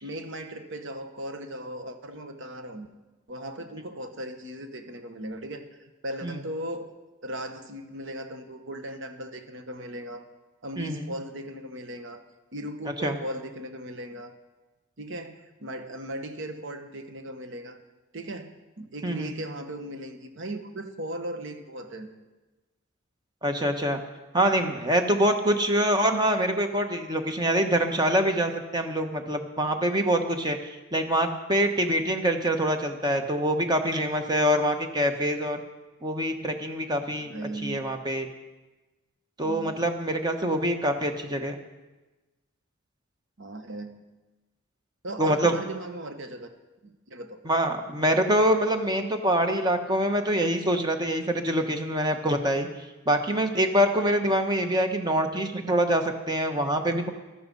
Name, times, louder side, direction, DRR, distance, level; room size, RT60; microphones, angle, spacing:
voice 1, 0.0-2.9 3.3-5.6 6.0-6.9 7.2-10.2 10.6-12.2 12.5-14.3 15.0-17.8 18.1-22.1 37.2-38.0 39.4-39.8 43.4-44.1 45.0-46.5 46.8-47.4, right 1 dB, 60° right, 7 dB, 1.3 m, -37 dB
voice 2, 23.4-24.0 24.3-35.6 36.0-37.3 37.6-38.3 39.4-41.6 45.2-45.5 47.4-52.7 53.1-57.1, right 1 dB, 20° right, 5 dB, 1.2 m, -25 dB
14.5 x 12.5 x 5.4 m, 1.1 s
head